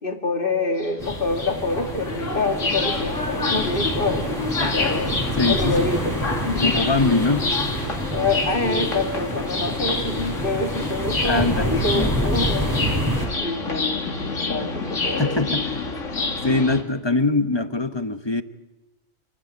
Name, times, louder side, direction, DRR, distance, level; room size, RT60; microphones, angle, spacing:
voice 1, 0.0-5.1 5.5-7.1 8.1-12.7 13.4-15.5, left 2 dB, 45° left, 2.4 m, -26 dB
sound 1, 0.8-16.8, left 3 dB, 85° left, 2.6 m, -28 dB
sound 2, 1.0-13.3, equal, 15° right, 4.9 m, -28 dB
voice 2, 5.4-5.8 6.6-7.5 11.2-12.1 15.0-15.9 16.4-18.4, left 3 dB, 25° left, 0.9 m, -23 dB
28.0 x 17.0 x 9.7 m
omnidirectional pair, 1.3 m